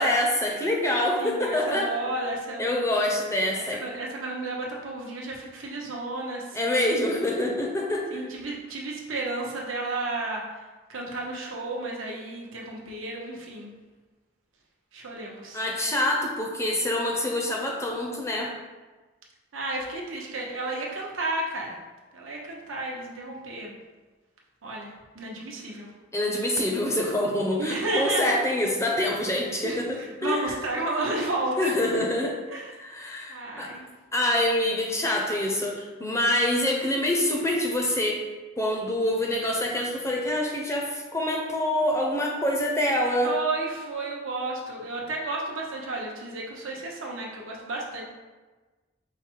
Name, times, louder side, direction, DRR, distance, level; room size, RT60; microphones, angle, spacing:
voice 1, 0.0-1.9 2.6-3.8 6.5-8.1 15.5-18.5 26.1-30.5 31.6-32.4 32.8-33.7 34.1-38.2 38.6-43.3, left 1 dB, 15° left, 0 dB, 0.5 m, -26 dB
voice 2, 1.2-3.1 3.5-7.0 8.1-10.6 10.9-13.7 14.9-15.6 19.5-21.8 22.1-23.7 24.6-25.9 27.6-28.4 29.6-31.7 32.5-32.7 33.3-33.8 43.2-48.0, right 2 dB, 85° right, -2 dB, 0.8 m, -32 dB
4.8 x 2.1 x 4.5 m, 1.3 s
head